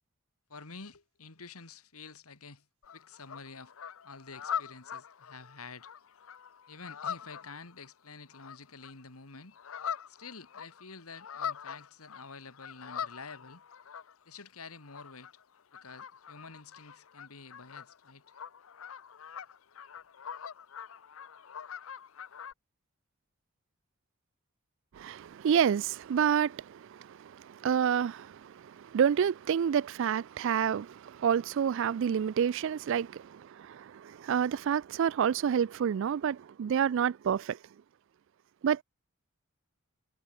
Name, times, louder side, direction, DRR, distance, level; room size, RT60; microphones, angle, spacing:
voice 1, 0.5-2.7 2.9-3.7 4.0-5.9 6.7-9.5 10.1-13.6 14.3-15.3 15.7-18.2, left 4 dB, 85° left, 2.4 m, -49 dB
sound 1, 2.8-9.0 9.3-14.4 14.7-22.5, left 7 dB, 65° left, 0.7 m, -43 dB
voice 2, 25.0-28.5 28.9-37.6 38.6-38.8, right 8 dB, 60° right, 0.3 m, -29 dB
head